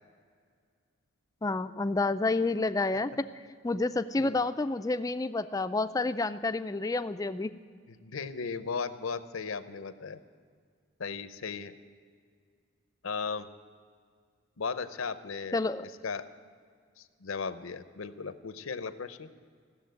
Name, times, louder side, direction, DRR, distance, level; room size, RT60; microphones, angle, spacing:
voice 1, 1.4-3.3 3.6-7.5 15.5-15.8, left 3 dB, 15° left, 11 dB, 0.3 m, -29 dB
voice 2, 7.9-10.2 11.0-11.7 13.0-13.5 14.6-15.6 16.0-16.3 17.0-19.3, left 5 dB, 80° left, 12 dB, 0.7 m, -36 dB
15.5 x 7.2 x 9.1 m, 2.1 s
head